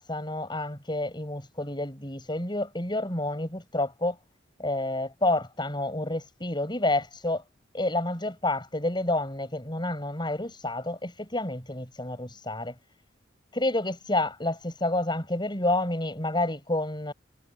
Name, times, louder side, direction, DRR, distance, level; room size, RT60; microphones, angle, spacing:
voice 1, 0.0-4.2 4.6-7.4 7.7-12.8 13.5-17.1, left 2 dB, 25° left, 7.4 m, -29 dB
head